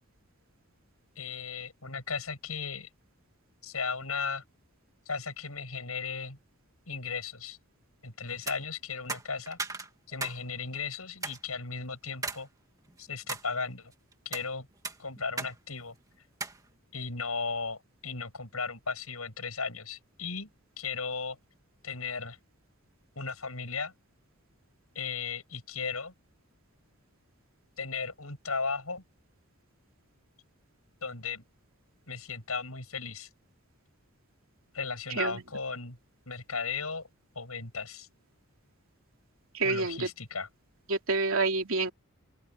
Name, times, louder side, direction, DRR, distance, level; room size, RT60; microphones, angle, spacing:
voice 1, 1.2-2.9 3.6-4.4 5.1-6.4 6.9-7.6 8.0-9.6 10.1-12.5 13.0-13.9 14.2-14.7 15.0-15.9 16.9-20.5 20.8-21.4 21.8-22.4 23.2-23.9 24.9-26.1 27.8-29.0 31.0-31.4 32.1-33.3 34.7-36.0 36.3-37.1 37.3-38.1 39.6-40.5, left 5 dB, 90° left, 7.7 m, -36 dB
sound 1, 8.3-8.6 9.1-10.4 10.7-10.8 11.2-11.4 12.2-12.4 12.9-13.5 14.1-14.5 14.8-15.5 15.8-15.9 16.4-16.6, right 3 dB, 15° right, 2.0 m, -36 dB
voice 2, 39.5-40.1 40.9-41.9, right 3 dB, 70° right, 3.2 m, -28 dB
open air
head